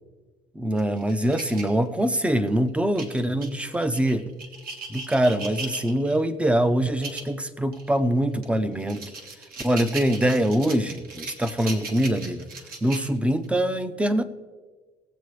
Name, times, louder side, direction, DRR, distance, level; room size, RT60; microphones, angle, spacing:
voice 1, 0.5-4.3 4.9-9.1 9.6-12.5 12.8-14.2, right 1 dB, 5° right, 12 dB, 0.6 m, -24 dB
sound 1, 0.8-2.4 3.0-6.2 6.8-7.3 7.7-7.9 8.4-13.5, right 3 dB, 60° right, 1.6 m, -38 dB
18.5 x 7.6 x 3.3 m, 1.4 s
cardioid pair, 110°, 17 cm